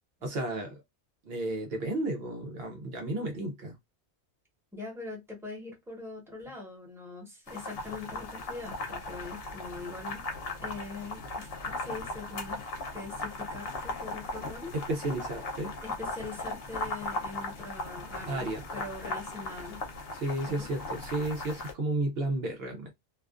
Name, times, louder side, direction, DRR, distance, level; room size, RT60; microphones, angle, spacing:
voice 1, 0.2-0.8 1.2-3.8 14.7-15.7 18.3-18.6 20.1-22.9, right 2 dB, 65° right, 0.8 m, -33 dB
voice 2, 4.7-10.2 10.6-12.7 12.9-14.7 15.8-19.8 20.4-20.7, left 3 dB, 5° right, 0.9 m, -42 dB
sound 1, 7.5-21.7, left 2 dB, 65° left, 0.9 m, -38 dB
2.4 x 2.3 x 2.3 m
omnidirectional pair, 1.1 m